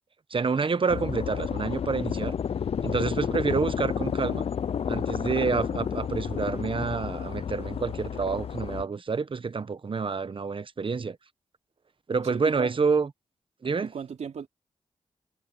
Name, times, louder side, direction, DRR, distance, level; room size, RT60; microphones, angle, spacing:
voice 1, 0.3-2.4 2.8-4.5 4.9-11.2 12.1-13.1 13.6-13.9, right 5 dB, 45° right, 1.0 m, -28 dB
sound 1, 0.9-8.8, left 7 dB, 55° left, 0.4 m, -31 dB
voice 2, 12.3-12.7 13.8-14.5, right 6 dB, 75° right, 3.3 m, -36 dB
cardioid pair, 50°, 12 cm